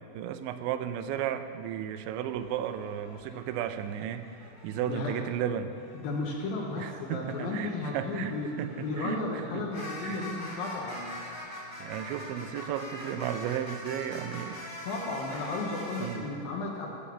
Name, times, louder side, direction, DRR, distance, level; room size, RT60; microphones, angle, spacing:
voice 1, 0.1-5.7 6.8-9.2 9.5-9.6 10.0-10.3 11.8-14.6 16.0-16.2, right 9 dB, 85° right, 10 dB, 3.0 m, -34 dB
sound 1, 2.3-5.2 5.6-16.2, left 1 dB, 10° left, 1.2 m, -44 dB
voice 2, 5.9-8.5 8.8-11.2 14.8-16.9, left 2 dB, 70° left, -1 dB, 2.5 m, -34 dB
15.5 x 7.3 x 7.1 m, 2.7 s
omnidirectional pair, 5.1 m